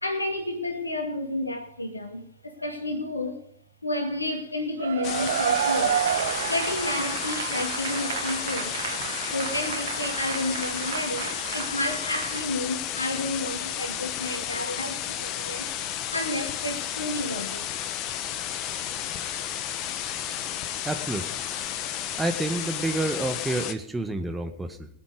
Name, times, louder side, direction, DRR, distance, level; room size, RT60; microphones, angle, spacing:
voice 1, 0.0-3.4 3.8-8.7 9.3-15.7 16.1-17.7, left 1 dB, 85° left, 2.2 m, -31 dB
Cheering / Applause / Crowd, 4.8-12.5, right 9 dB, 60° right, 0.7 m, -30 dB
sound 1, 5.0-23.7, left 10 dB, 40° left, 1.2 m, -32 dB
voice 2, 20.8-21.3 22.2-24.9, right 2 dB, 10° right, 1.6 m, -29 dB
22.0 x 7.8 x 5.0 m
figure-of-eight pair, 90°, 0 cm